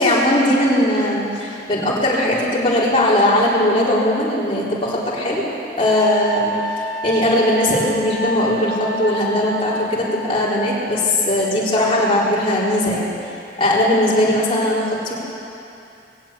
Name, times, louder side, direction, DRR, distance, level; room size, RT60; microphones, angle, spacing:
voice 1, 0.0-5.4 5.8-6.6 7.0-13.1 13.6-15.1, left 1 dB, 30° left, -7 dB, 4.2 m, -19 dB
Wind instrument woodwind instrument, 5.9-10.9, right 1 dB, 5° right, 2.9 m, -29 dB
20.0 x 17.0 x 8.5 m, 2.7 s
head